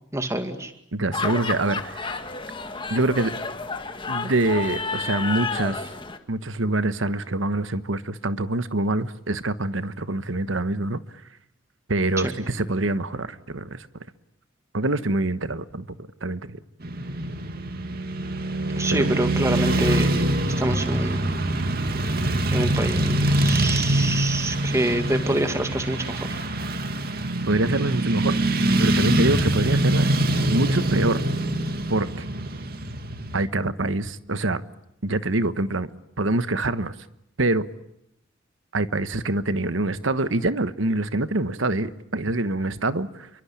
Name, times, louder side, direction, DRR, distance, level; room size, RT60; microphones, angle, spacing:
voice 1, 0.1-0.7 12.2-12.3 18.8-20.3 20.6-21.3 22.5-26.4, right 1 dB, 15° right, 2.1 m, -26 dB
voice 2, 0.9-2.2 2.9-3.3 4.1-5.9 6.3-11.0 11.9-13.9 14.7-15.9 16.2-16.6 18.9-19.2 27.5-28.5 28.8-30.2 30.5-31.2 31.9-32.3 33.3-34.6 35.0-35.9 36.2-36.9 37.4-37.6 38.7-43.3, right 2 dB, 75° right, 1.3 m, -25 dB
sound 1, 1.1-6.2, left 4 dB, 25° left, 2.0 m, -31 dB
Motorcycle / Traffic noise roadway noise, 16.8-33.5, right 1 dB, 50° right, 2.3 m, -24 dB
29.0 x 24.0 x 8.5 m
head